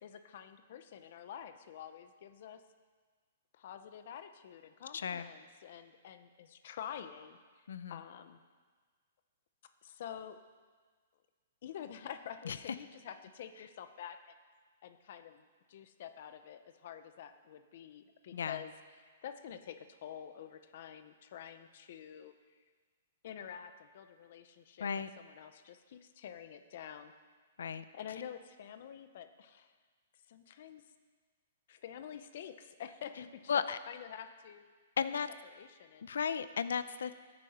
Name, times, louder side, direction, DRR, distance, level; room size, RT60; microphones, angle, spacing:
voice 1, 0.0-2.6 3.5-8.4 9.8-10.4 11.6-14.3 14.8-22.3 23.2-27.1 27.9-29.7 30.3-30.8 31.7-34.6 35.0-35.1 35.4-36.1, left 9 dB, 40° left, 9 dB, 0.7 m, -48 dB
voice 2, 4.9-5.3 7.7-8.0 12.5-12.6 18.3-18.6 24.8-25.1 27.6-27.8 33.5-33.8 35.0-35.3 36.0-37.1, left 6 dB, 85° left, 14 dB, 0.6 m, -34 dB
16.5 x 9.7 x 4.3 m, 1.5 s
hypercardioid pair, 180°, 0 cm